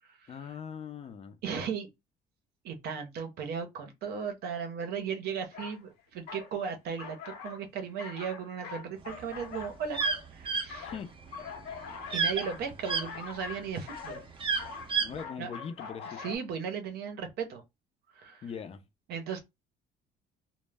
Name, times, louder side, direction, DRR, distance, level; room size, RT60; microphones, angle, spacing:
voice 1, 0.3-1.4 10.8-11.1 15.0-16.2 18.4-18.8, left 7 dB, 35° left, 0.4 m, -41 dB
voice 2, 1.4-1.9 2.6-10.0 10.3-10.9 12.1-14.2 15.4-15.5 16.2-17.6 18.1-18.4 19.1-19.4, right 6 dB, 70° right, 0.7 m, -36 dB
sound 1, 5.5-5.8 6.3-6.5 7.0-7.7 8.0-10.2 10.7-16.4, left 6 dB, 85° left, 0.8 m, -43 dB
sound 2, 9.2-13.1 13.6-15.2, right 5 dB, 30° right, 0.5 m, -30 dB
2.1 x 2.0 x 3.3 m
cardioid pair, 110°, 17 cm